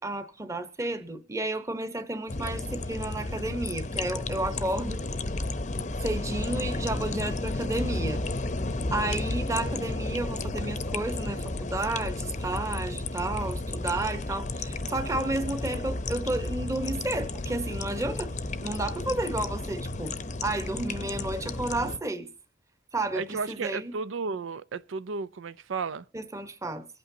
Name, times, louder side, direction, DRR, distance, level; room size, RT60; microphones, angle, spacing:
voice 1, 0.0-5.0 5.8-8.2 8.9-18.3 18.6-20.1 20.4-22.3 22.9-23.9 26.1-26.9, right 2 dB, 15° right, 1.0 m, -32 dB
sound 1, 2.3-22.0, left 2 dB, 35° left, 0.7 m, -32 dB
voice 2, 23.1-26.1, right 4 dB, 85° right, 0.5 m, -33 dB
24.0 x 8.6 x 2.7 m
head